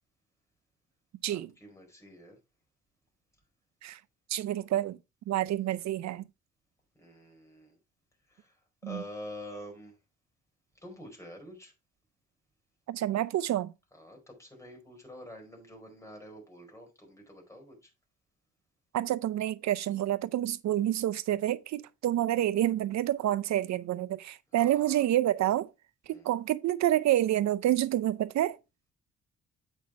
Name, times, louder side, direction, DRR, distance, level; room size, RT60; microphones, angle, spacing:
voice 1, 1.3-2.4 5.5-5.7 7.0-7.8 8.3-8.5 8.8-9.9 10.8-11.7 13.9-17.9 24.6-25.1 26.1-26.3, left 1 dB, 10° left, 4.6 m, -47 dB
voice 2, 4.3-5.0 5.3-6.2 8.8-9.0 12.9-13.7 18.9-25.7 26.1-28.6, right 13 dB, 65° right, 0.6 m, -28 dB
8.5 x 5.4 x 4.5 m
cardioid pair, 90°, 30 cm